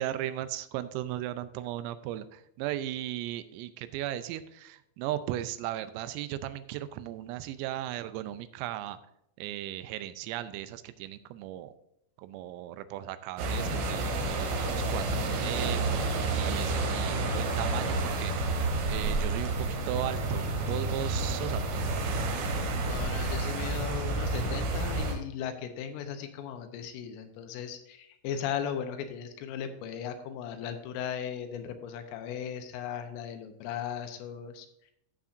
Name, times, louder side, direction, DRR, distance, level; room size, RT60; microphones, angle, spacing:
voice 1, 0.0-9.0 9.4-11.7 12.2-18.6 18.9-21.7, right 13 dB, 85° right, 12 dB, 3.3 m, -36 dB
sound 1, 13.4-25.2, right 2 dB, 70° right, 3.3 m, -30 dB
voice 2, 22.8-34.7, left 8 dB, 80° left, 7 dB, 3.4 m, -37 dB
14.5 x 7.0 x 2.6 m, 0.79 s
omnidirectional pair, 5.9 m